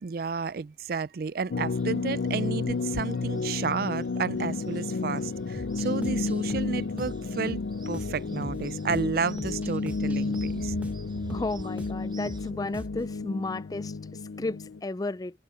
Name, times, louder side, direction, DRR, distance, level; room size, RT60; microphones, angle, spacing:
voice 1, 0.0-10.8, right 5 dB, 55° right, 0.4 m, -32 dB
sound 1, 1.5-14.8, left 4 dB, 75° left, 0.5 m, -31 dB
sound 2, 1.7-12.5, right 5 dB, 25° right, 7.3 m, -56 dB
sound 3, 5.5-13.2, equal, 10° right, 1.0 m, -42 dB
voice 2, 11.3-15.4, left 2 dB, 20° left, 0.3 m, -33 dB
head